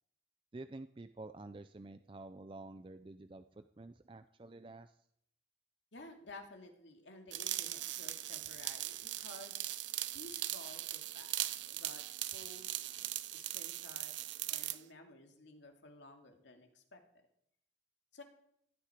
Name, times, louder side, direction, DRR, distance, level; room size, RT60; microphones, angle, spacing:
voice 1, 0.5-5.0, right 2 dB, 25° right, 10 dB, 0.4 m, -50 dB
voice 2, 5.9-9.6 10.1-12.0 12.3-12.8 13.3-14.1 14.5-17.0 18.1-18.2, left 2 dB, 75° left, 4 dB, 2.4 m, -54 dB
sound 1, 7.3-14.8, right 14 dB, 75° right, 0.7 m, -40 dB
16.0 x 12.0 x 5.0 m, 0.72 s
head